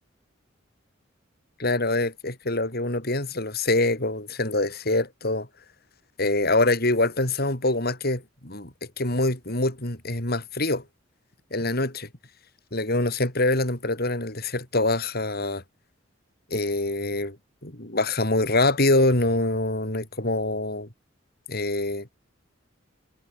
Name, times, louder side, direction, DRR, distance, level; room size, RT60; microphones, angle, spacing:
voice 1, 1.6-5.5 6.2-10.8 11.5-12.1 12.7-15.6 16.5-17.4 17.6-20.9 21.5-22.1, left 2 dB, 50° left, 6.6 m, -25 dB
head